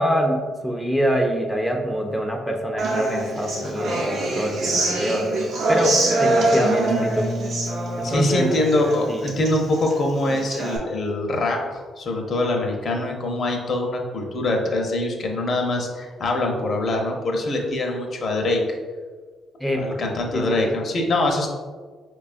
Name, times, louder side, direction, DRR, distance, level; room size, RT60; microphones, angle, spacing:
voice 1, 0.0-5.3 5.7-7.3 8.0-8.5 9.1-9.3 19.6-20.0 20.3-20.8, equal, ahead, 1 dB, 0.4 m, -25 dB
Human voice / Acoustic guitar, 2.8-10.8, right 2 dB, 70° right, 0.7 m, -24 dB
voice 2, 8.0-11.6 12.0-18.6 19.8-21.5, left 2 dB, 50° left, 1 dB, 0.5 m, -24 dB
4.5 x 2.3 x 2.4 m, 1.5 s
cardioid pair, 90°, 0 cm